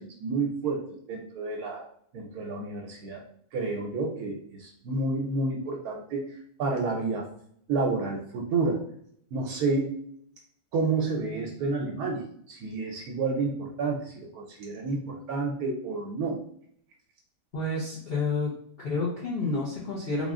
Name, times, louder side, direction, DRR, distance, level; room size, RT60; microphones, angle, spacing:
voice 1, 0.0-1.9 2.1-3.2 3.5-6.2 6.6-7.2 7.7-8.8 9.3-10.0 10.7-16.4, right 3 dB, 75° right, 0 dB, 1.1 m, -30 dB
voice 2, 17.5-18.5 18.8-20.3, left 3 dB, 45° left, -6 dB, 0.9 m, -29 dB
3.6 x 2.4 x 3.5 m, 0.65 s
omnidirectional pair, 1.7 m